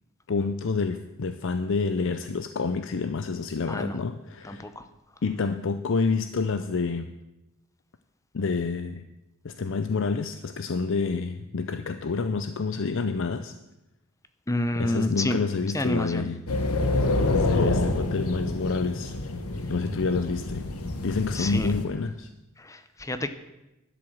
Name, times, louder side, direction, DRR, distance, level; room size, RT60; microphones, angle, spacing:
voice 1, 0.3-4.7 5.2-7.1 8.3-9.1 9.4-13.6 14.8-16.4 17.2-19.1 19.7-20.7 21.0-22.3, left 4 dB, 60° left, 10 dB, 0.5 m, -28 dB
voice 2, 3.7-4.0 4.4-4.9 14.5-15.4 15.7-16.3 21.3-21.7 22.6-23.3, left 1 dB, 15° left, 11 dB, 0.7 m, -28 dB
sound 1, 16.5-21.9, left 2 dB, 80° left, 1.3 m, -27 dB
11.5 x 7.8 x 7.3 m, 0.97 s
head